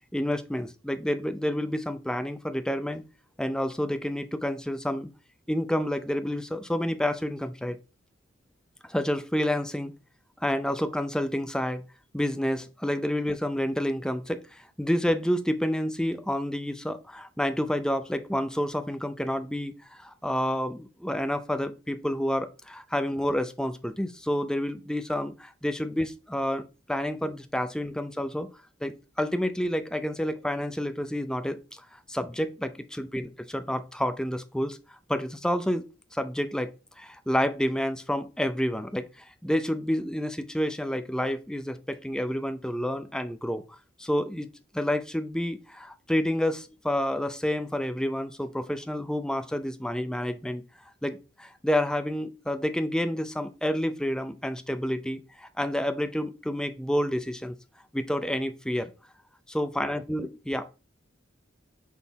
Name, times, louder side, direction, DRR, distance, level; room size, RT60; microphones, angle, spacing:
voice 1, 0.1-3.0 3.4-5.1 5.5-7.8 8.8-9.9 10.4-11.8 12.1-26.6 26.9-28.5 28.8-34.8 35.1-35.9 36.1-36.7 37.0-43.6 44.0-44.5 44.7-50.6 51.0-57.5 57.9-58.9 59.5-60.7, equal, 5° left, 9 dB, 0.5 m, -29 dB
6.3 x 3.9 x 4.0 m, 0.31 s
head